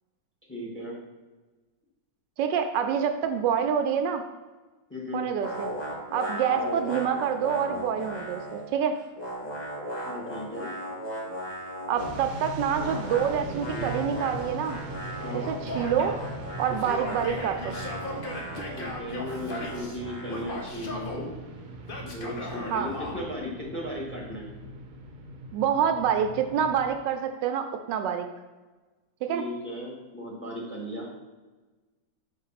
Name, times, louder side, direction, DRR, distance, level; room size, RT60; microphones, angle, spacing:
voice 1, 0.5-1.0 2.8-3.0 3.3-3.6 4.9-5.2 6.5-6.8 10.0-10.7 13.5-13.9 15.2-15.5 18.7-21.3 22.0-24.4 29.3-31.1, left 1 dB, 5° left, -3 dB, 1.5 m, -36 dB
voice 2, 2.4-4.2 5.1-5.7 6.1-9.0 11.9-14.8 15.3-16.1 16.6-17.8 22.7-22.9 25.5-28.3 29.2-29.4, right 8 dB, 80° right, 7 dB, 1.2 m, -27 dB
sound 1, 5.4-8.7 9.0-12.3 12.7-20.8, equal, 70° left, 2.3 m, -37 dB
sound 2, 12.0-26.9, right 2 dB, 60° right, 1.0 m, -40 dB
Male speech man speaking / Yell, 15.7-16.3 16.7-20.0 20.3-21.2 21.9-23.2, left 2 dB, 45° left, 0.8 m, -37 dB
5.0 x 4.4 x 5.7 m, 1.2 s
omnidirectional pair, 1.9 m